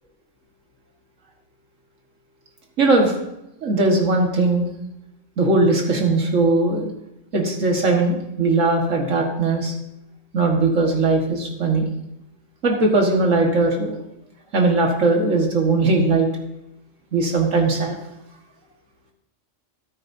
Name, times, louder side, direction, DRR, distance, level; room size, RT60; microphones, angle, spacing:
voice 1, 2.8-3.2 3.6-4.7 5.4-6.9 7.3-9.7 10.3-11.9 12.6-13.9 14.5-16.3 17.1-18.0, right 3 dB, 90° right, 1 dB, 2.0 m, -19 dB
13.0 x 13.0 x 2.7 m, 0.87 s
omnidirectional pair, 1.3 m